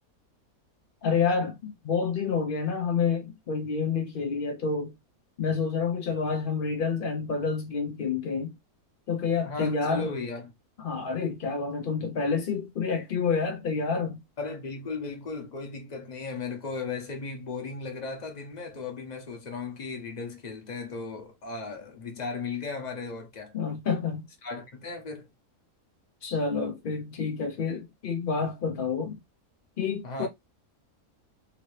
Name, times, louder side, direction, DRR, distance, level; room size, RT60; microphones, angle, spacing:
voice 1, 1.0-4.9 5.4-8.6 9.1-10.1 10.8-14.2 23.5-24.3 26.2-29.2 29.8-30.3, left 5 dB, 70° left, 0.5 m, -28 dB
voice 2, 9.4-10.5 14.4-23.5 24.4-25.3 30.0-30.3, left 4 dB, 35° left, 0.8 m, -36 dB
2.9 x 2.7 x 3.1 m
omnidirectional pair, 1.6 m